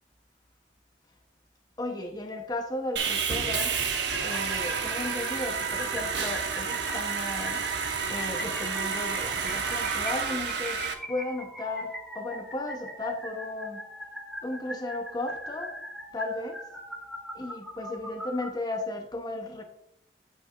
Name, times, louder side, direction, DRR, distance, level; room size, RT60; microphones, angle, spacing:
voice 1, 1.8-3.8 4.2-7.7 8.1-13.8 14.4-15.7 16.1-16.6 17.3-19.6, left 2 dB, 25° left, 4 dB, 0.7 m, -35 dB
Sawing, 3.0-10.9, right 6 dB, 85° right, 0.9 m, -30 dB
sound 1, 3.5-18.5, equal, ahead, 1.0 m, -41 dB
9.0 x 7.9 x 2.4 m, 0.76 s
head